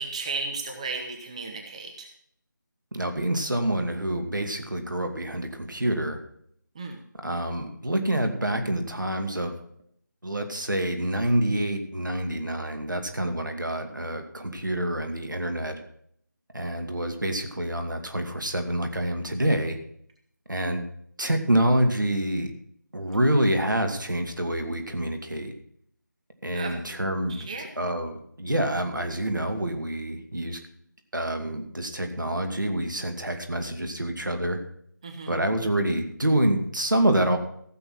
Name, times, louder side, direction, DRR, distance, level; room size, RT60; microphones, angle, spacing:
voice 1, 0.0-2.1 6.7-7.0 26.5-26.8 27.3-27.7 35.0-35.4, right 4 dB, 20° right, 2 dB, 0.9 m, -34 dB
voice 2, 2.9-6.2 7.2-9.6 10.2-15.8 16.5-19.8 20.5-20.9 21.2-22.5 22.9-25.5 26.4-30.6 31.1-34.6 35.3-37.4, right 1 dB, 75° right, 6 dB, 2.4 m, -27 dB
15.0 x 6.9 x 5.9 m, 0.66 s
figure-of-eight pair, 165°, 11 cm